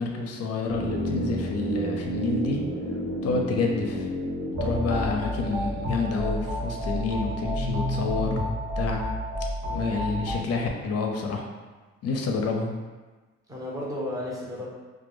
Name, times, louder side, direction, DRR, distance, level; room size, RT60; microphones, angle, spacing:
voice 1, 0.0-2.6 3.2-4.1 4.6-9.0 9.7-11.4 12.0-12.7, left 4 dB, 55° left, 2 dB, 0.5 m, -28 dB
sound 1, 0.7-6.7 6.9-7.0, right 1 dB, 55° right, 0.8 m, -32 dB
sound 2, 4.5-10.4, equal, 80° right, 0.9 m, -30 dB
voice 2, 13.5-14.7, left 1 dB, 10° right, -5 dB, 0.7 m, -34 dB
2.2 x 2.1 x 3.0 m, 1.3 s
cardioid pair, 90°, 30 cm